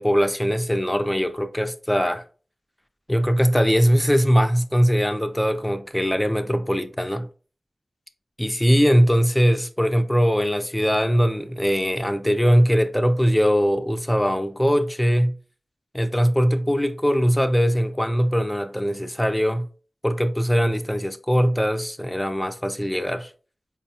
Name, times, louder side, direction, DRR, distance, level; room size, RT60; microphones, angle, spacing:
voice 1, 0.0-2.2 3.1-7.3 8.4-15.4 15.9-19.7 20.0-23.3, equal, 5° left, 0.4 m, -21 dB
4.6 x 2.2 x 2.8 m
wide cardioid pair, 80°, 0 cm